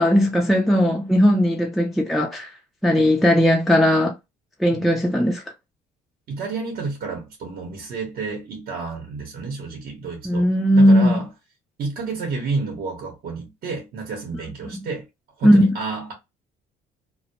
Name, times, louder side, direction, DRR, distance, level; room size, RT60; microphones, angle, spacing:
voice 1, 0.0-2.5 2.8-4.1 4.6-5.4 10.2-11.2 14.7-14.9 15.4-15.7, equal, ahead, 0.3 m, -17 dB
voice 2, 6.3-10.5 10.7-11.3 11.8-15.0 15.4-16.1, right 4 dB, 60° right, 0.8 m, -30 dB
2.1 x 2.1 x 2.8 m
cardioid pair, 110°, 17 cm